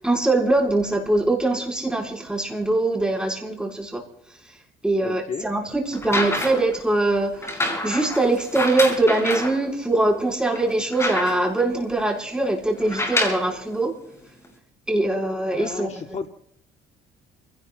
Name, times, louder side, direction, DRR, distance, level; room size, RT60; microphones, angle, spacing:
voice 1, 0.0-4.0 4.8-13.9 14.9-16.2, right 2 dB, 5° right, 0 dB, 4.8 m, -22 dB
voice 2, 5.0-5.4 15.5-16.3, left 6 dB, 40° left, 5 dB, 1.2 m, -32 dB
sound 1, 5.9-6.7 7.4-9.6 10.1-10.2 10.5-11.6 12.8-13.5 14.4-14.5, left 1 dB, 15° left, 6.1 m, -27 dB
29.5 x 17.5 x 2.3 m, 0.80 s
cardioid pair, 110°, 17 cm